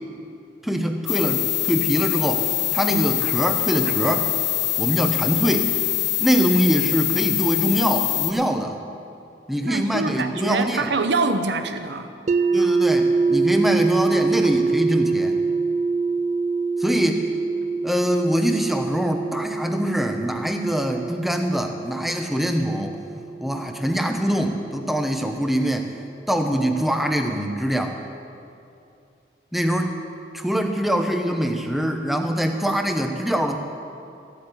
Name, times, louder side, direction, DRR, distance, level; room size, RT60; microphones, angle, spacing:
voice 1, 0.6-4.3 4.8-5.7 6.2-8.8 9.5-10.9 12.5-15.4 16.8-17.3 17.8-25.9 26.3-28.0 29.5-29.9 30.3-33.6, equal, ahead, 4 dB, 0.8 m, -23 dB
sound 1, 1.1-8.3, left 14 dB, 80° left, 0.8 m, -24 dB
voice 2, 9.6-12.1, right 3 dB, 80° right, 8 dB, 0.9 m, -25 dB
sound 2, 12.3-24.2, right 4 dB, 40° right, 0.4 m, -24 dB
14.5 x 8.2 x 8.4 m, 2.6 s
head